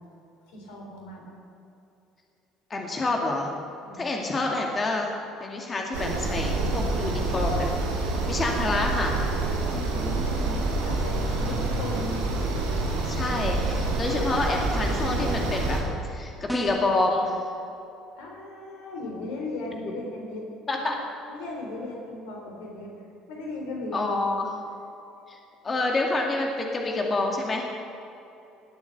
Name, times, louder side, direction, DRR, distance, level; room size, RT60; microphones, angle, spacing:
voice 1, 0.5-1.4 3.8-4.1 9.7-12.2 18.2-20.4 20.7-21.0 21.3-22.9 23.3-24.4, left 2 dB, 70° left, 0 dB, 3.8 m, -37 dB
voice 2, 2.7-3.5 4.0-5.1 5.4-9.2 11.5-11.6 13.0-17.4 20.7-20.9 23.9-24.5 25.3-25.4 25.6-27.6, left 2 dB, 30° left, 1 dB, 2.3 m, -28 dB
sound 1, 5.9-15.8, right 2 dB, 75° right, 2.4 m, -27 dB
sound 2, 16.5-17.0, right 2 dB, ahead, 2.0 m, -31 dB
19.5 x 8.6 x 6.7 m, 2.8 s
hypercardioid pair, 60°, 0 cm